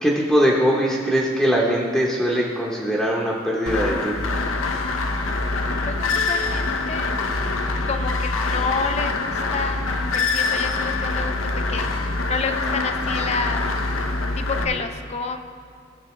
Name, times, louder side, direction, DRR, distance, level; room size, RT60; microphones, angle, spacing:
voice 1, 0.0-4.2 14.7-14.8, equal, ahead, -5 dB, 0.8 m, -21 dB
sound 1, 3.7-14.6, left 3 dB, 85° left, 0.7 m, -24 dB
voice 2, 5.9-7.1 7.9-9.8 10.1-11.9 12.3-13.7 14.4-15.4, left 4 dB, 35° left, 7 dB, 0.4 m, -29 dB
15.0 x 6.6 x 3.1 m, 2.1 s
head